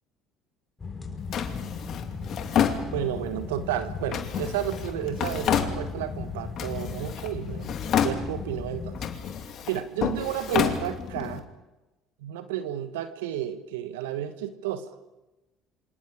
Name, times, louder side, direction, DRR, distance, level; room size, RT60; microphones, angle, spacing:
sound 1, 0.8-9.2, left 4 dB, 25° left, 5.7 m, -37 dB
Drawer open or close, 1.3-3.4 4.1-6.2 6.6-7.3 7.6-8.6 8.9-11.4, left 8 dB, 55° left, 2.6 m, -29 dB
voice 1, 2.9-7.7 8.0-9.0 9.7-11.4 12.2-14.9, right 11 dB, 80° right, 10 dB, 1.4 m, -32 dB
28.0 x 26.0 x 5.1 m, 1.1 s
hypercardioid pair, 65°, 0 cm